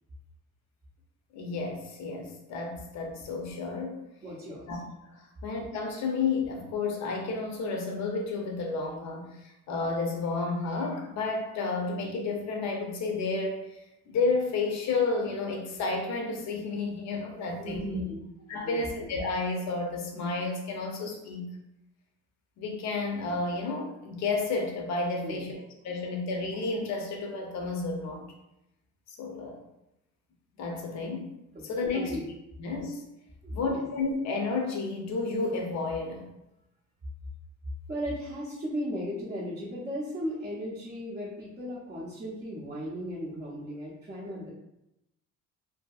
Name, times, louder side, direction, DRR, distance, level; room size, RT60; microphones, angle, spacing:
voice 1, 1.3-4.1 4.7-4.8 5.0-13.7 14.1-17.8 18.5-21.5 22.6-28.3 29.1-29.6 30.6-31.3 31.6-32.2 32.6-33.0 33.5-36.3, left 3 dB, 60° left, 2 dB, 0.6 m, -31 dB
voice 2, 4.2-4.7 17.6-18.3 18.5-18.9 25.2-25.4 31.5-31.7 31.9-32.2 33.4-33.8 37.9-44.5, equal, 25° right, -7 dB, 0.5 m, -36 dB
2.7 x 2.6 x 2.3 m, 0.88 s
cardioid pair, 170°, 31 cm